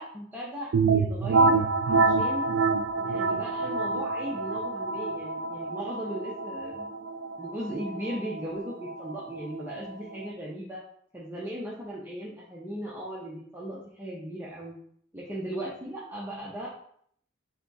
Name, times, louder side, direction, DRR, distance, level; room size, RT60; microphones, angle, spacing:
voice 1, 0.0-2.5 2.9-6.9 7.4-10.8 11.1-14.8 15.1-16.7, right 1 dB, 10° right, -6 dB, 0.7 m, -37 dB
sound 1, 0.7-10.3, right 4 dB, 65° right, 0.3 m, -27 dB
3.5 x 3.4 x 4.0 m, 0.65 s
head